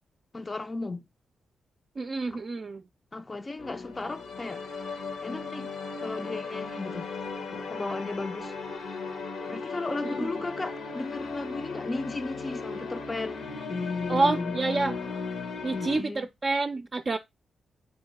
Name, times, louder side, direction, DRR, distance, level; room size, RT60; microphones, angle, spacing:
voice 1, 0.3-1.0 2.3-2.4 3.1-4.6 5.2-5.7 6.0-7.1 7.5-8.5 9.5-14.6 15.7-16.3, left 3 dB, 35° left, 0.4 m, -35 dB
voice 2, 2.0-2.8 10.0-10.3 14.1-15.0 15.6-17.2, right 3 dB, 50° right, 0.4 m, -28 dB
sound 1, 3.6-16.0, left 4 dB, 80° left, 0.8 m, -36 dB
4.6 x 2.9 x 3.9 m
hypercardioid pair, 40°, 0 cm